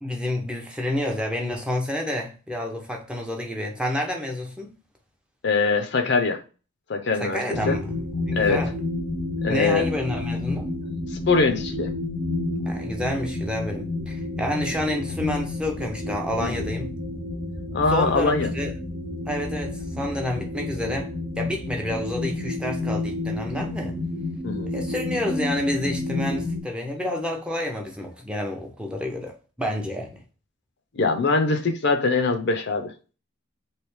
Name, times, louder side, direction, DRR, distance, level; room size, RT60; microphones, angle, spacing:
voice 1, 0.0-4.7 7.2-8.7 9.5-10.7 12.5-16.9 17.9-18.7 19.3-24.0 24.7-30.2, left 1 dB, 5° right, 0.5 m, -29 dB
voice 2, 5.4-6.4 6.9-7.8 8.3-8.6 9.4-9.9 11.1-11.9 16.4-16.7 17.7-18.5 24.4-24.7 30.9-32.9, left 4 dB, 55° left, 0.5 m, -23 dB
sound 1, 7.5-26.6, left 2 dB, 45° right, 0.9 m, -30 dB
3.3 x 2.8 x 3.1 m
head